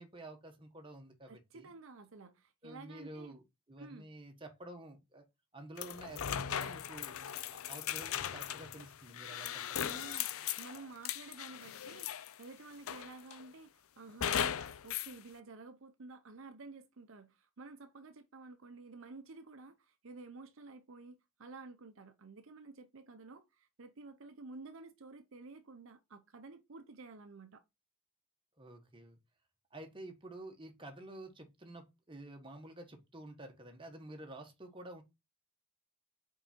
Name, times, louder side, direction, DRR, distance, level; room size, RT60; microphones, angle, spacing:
voice 1, 0.0-1.7 2.6-3.4 3.7-5.2 5.5-7.2 7.5-10.1 28.6-29.2 29.7-35.0, right 1 dB, 20° right, 1.3 m, -50 dB
voice 2, 1.3-3.4 3.8-4.1 9.8-27.6, right 3 dB, 60° right, 0.7 m, -52 dB
sound 1, 5.8-12.4 12.9-13.5 14.2-15.1, left 9 dB, 70° left, 0.5 m, -38 dB
5.4 x 4.7 x 4.3 m
head